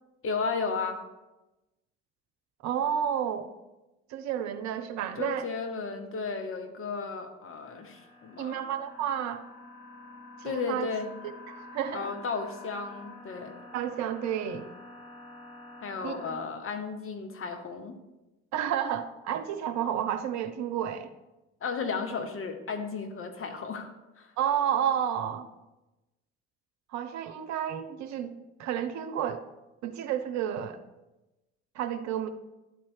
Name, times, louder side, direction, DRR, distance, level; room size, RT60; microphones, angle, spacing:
voice 1, 0.2-1.0 5.2-8.7 10.4-11.1 11.9-13.6 15.8-18.0 21.6-24.3, left 5 dB, 40° left, 5 dB, 1.2 m, -34 dB
voice 2, 2.6-3.5 4.1-5.5 8.4-9.5 10.4-10.9 11.5-12.1 13.7-14.7 16.0-16.1 18.5-21.1 24.4-25.5 26.9-28.3 28.6-29.4 29.8-30.8 31.7-32.3, right 9 dB, 55° right, 8 dB, 0.7 m, -31 dB
sound 1, 7.7-16.3, left 2 dB, 75° left, 1.7 m, -48 dB
12.0 x 4.4 x 4.5 m, 1.0 s
figure-of-eight pair, 50°, 34 cm